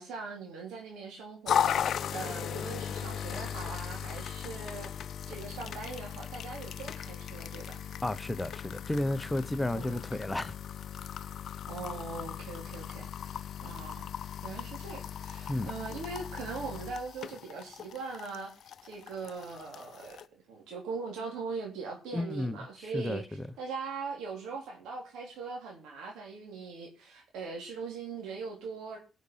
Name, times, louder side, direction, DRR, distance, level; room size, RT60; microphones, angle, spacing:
voice 1, 0.0-7.8 9.7-10.0 11.7-14.1 14.4-18.5 18.8-29.0, right 4 dB, 90° right, 3.3 m, -41 dB
sound 1, 1.5-20.3, left 9 dB, 65° left, 0.6 m, -37 dB
voice 2, 8.0-10.5 15.5-15.7 22.1-23.2, left 1 dB, 10° left, 0.9 m, -32 dB
18.0 x 6.3 x 5.6 m
cardioid pair, 90°, 0 cm